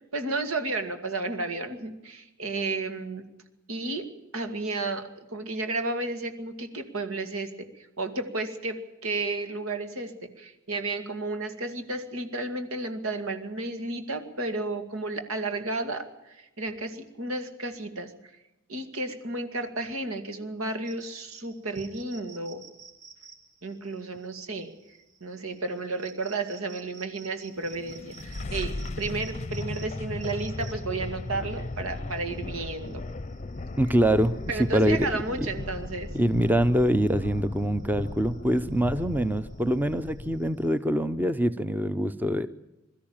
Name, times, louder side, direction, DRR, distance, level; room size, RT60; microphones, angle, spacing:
voice 1, 0.1-3.3 3.7-4.1 4.3-10.1 10.4-18.1 18.7-22.6 23.6-24.7 25.2-33.1 34.5-36.1, right 2 dB, 90° right, 7 dB, 2.3 m, -32 dB
sound 1, 20.8-40.7, right 6 dB, 35° right, 3.2 m, -53 dB
sound 2, 27.6-40.7, left 2 dB, 35° left, 0.6 m, -37 dB
voice 2, 33.8-34.4 34.7-35.2 36.1-42.5, equal, 10° right, 13 dB, 0.6 m, -24 dB
22.5 x 13.5 x 8.8 m, 0.99 s
head